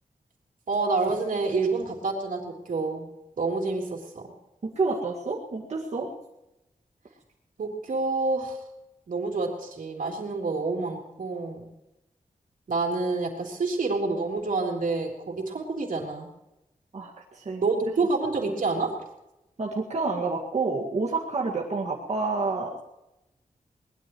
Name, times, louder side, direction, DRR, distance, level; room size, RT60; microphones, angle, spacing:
voice 1, 0.7-3.1 3.4-4.3 7.6-8.6 9.1-11.7 12.7-16.3 17.6-18.9, right 3 dB, 80° right, 1 dB, 3.6 m, -28 dB
voice 2, 4.6-6.1 16.9-17.6 19.6-22.8, right 3 dB, 55° right, -3 dB, 2.0 m, -29 dB
23.0 x 20.0 x 3.1 m, 0.92 s
wide cardioid pair, 145°, 14 cm